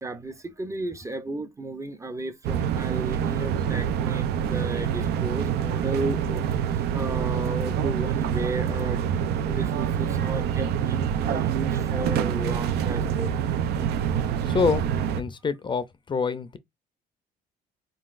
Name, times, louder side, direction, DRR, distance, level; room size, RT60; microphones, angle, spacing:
voice 1, 0.0-13.4, right 2 dB, 20° right, 0.6 m, -34 dB
sound 1, 2.4-15.2, right 8 dB, 75° right, 0.5 m, -26 dB
voice 2, 14.5-14.9 15.2-16.6, left 5 dB, 30° left, 0.5 m, -26 dB
4.4 x 3.9 x 2.5 m
cardioid pair, 110°, 17 cm